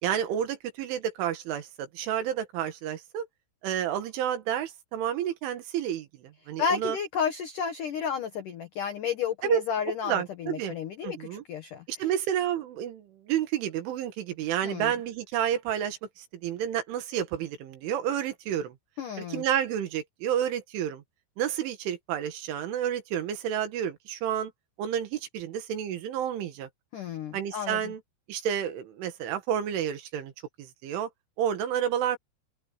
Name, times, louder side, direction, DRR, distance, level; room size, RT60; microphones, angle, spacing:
voice 1, 0.0-3.3 3.6-7.0 9.4-9.6 10.0-10.8 11.0-11.4 11.9-18.8 19.3-21.0 21.4-24.5 24.8-26.7 27.3-28.0 28.3-30.3 30.6-31.1 31.4-32.2, right 10 dB, 75° right, 4.2 m, -30 dB
voice 2, 6.6-12.1 14.6-14.9 19.0-19.4 26.9-27.9, left 7 dB, 85° left, 1.8 m, -32 dB
omnidirectional pair, 5.8 m